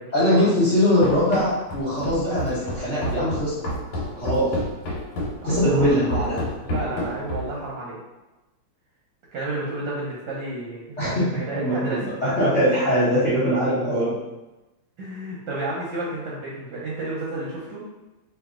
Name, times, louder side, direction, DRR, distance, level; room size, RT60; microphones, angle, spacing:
voice 1, 0.1-3.5 4.1-4.5 5.4-6.4 11.0-11.3 11.5-14.2, equal, 45° left, -12 dB, 1.0 m, -21 dB
Run, 1.0-7.6, equal, 75° left, 1.7 m, -29 dB
voice 2, 5.4-6.2 6.6-8.0 9.3-12.0 15.0-17.8, right 2 dB, 65° right, -5 dB, 1.2 m, -31 dB
3.0 x 3.0 x 3.6 m, 1.1 s
omnidirectional pair, 2.3 m